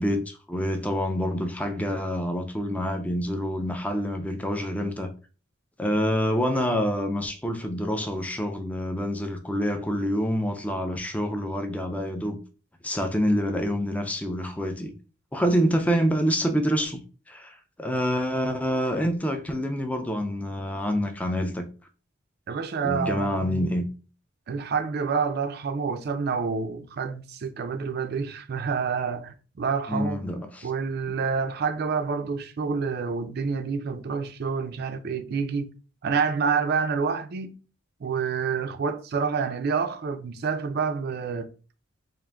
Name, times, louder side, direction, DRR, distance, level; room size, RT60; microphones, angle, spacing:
voice 1, 0.0-5.1 5.8-12.4 12.8-15.0 15.3-21.7 22.8-23.9 29.9-30.7, equal, 5° left, 0.4 m, -27 dB
voice 2, 22.5-23.8 24.5-30.2 30.6-35.7 36.0-37.5 38.0-41.5, right 5 dB, 50° right, 0.4 m, -28 dB
3.7 x 2.5 x 3.3 m
head